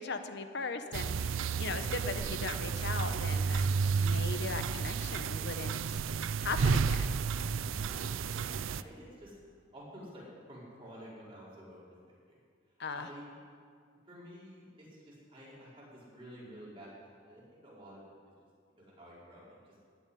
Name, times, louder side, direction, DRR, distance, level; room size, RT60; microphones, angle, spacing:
voice 1, 0.0-3.6 3.9-5.8 6.4-7.2 12.8-13.1, left 3 dB, 55° left, 8 dB, 1.0 m, -38 dB
sound 1, 0.9-8.8, right 5 dB, 75° right, 0.4 m, -32 dB
voice 2, 7.7-8.1 8.3-9.3 9.7-10.2 10.5-12.4 12.9-13.3 14.1-18.1 18.8-19.6, equal, 25° right, -7 dB, 5.0 m, -51 dB
16.5 x 7.2 x 9.9 m, 2.1 s
head